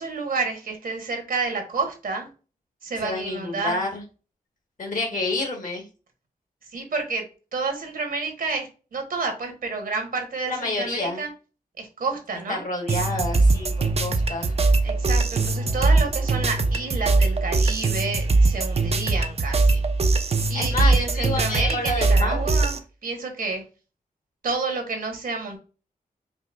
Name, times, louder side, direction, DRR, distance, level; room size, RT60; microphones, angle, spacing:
voice 1, 0.0-2.3 2.8-3.8 6.7-7.2 7.5-11.3 11.8-12.6 14.8-19.8 20.5-23.6 24.4-25.6, right 4 dB, 70° right, 4 dB, 1.3 m, -30 dB
voice 2, 3.0-4.0 4.8-5.8 10.5-11.2 12.5-13.7 14.0-14.5 20.5-22.5, left 2 dB, 60° left, 2 dB, 1.6 m, -28 dB
sound 1, 12.9-22.8, right 3 dB, 40° right, 0.6 m, -21 dB
5.0 x 2.7 x 2.5 m, 0.35 s
wide cardioid pair, 100°, 15 cm